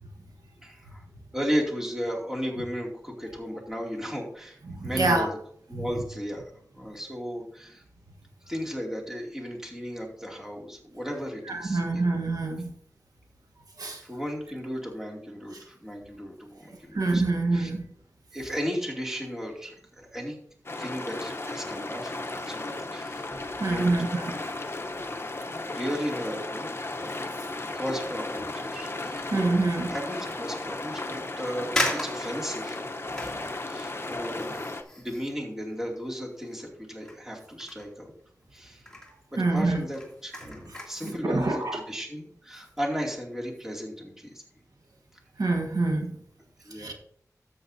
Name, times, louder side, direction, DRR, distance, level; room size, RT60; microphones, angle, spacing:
voice 1, 0.6-1.0 1.3-5.3 5.7-6.5 6.7-7.8 8.5-12.0 14.0-17.2 17.5-17.7 18.3-20.4 20.8-23.3 23.6-23.9 25.6-26.7 27.7-29.3 29.9-32.8 33.7-34.7 35.0-38.1 38.5-38.9 39.3-44.4 46.6-46.9, equal, 5° right, -2 dB, 2.5 m, -35 dB
voice 2, 4.6-5.3 5.7-5.9 11.4-12.7 13.8-14.0 15.5-15.6 16.7-17.9 23.3-24.3 29.3-29.9 39.4-39.8 41.0-41.8 45.4-46.2 46.7-46.9, right 2 dB, 80° right, 4 dB, 1.4 m, -26 dB
sound 1, 20.7-34.8, left 2 dB, 40° left, 0.9 m, -35 dB
sound 2, 31.7-36.7 37.0-38.5 38.8-39.2 39.6-41.2 41.6-41.7, left 1 dB, 10° left, 2.6 m, -36 dB
13.0 x 8.0 x 2.7 m, 0.63 s
wide cardioid pair, 80°, 6 cm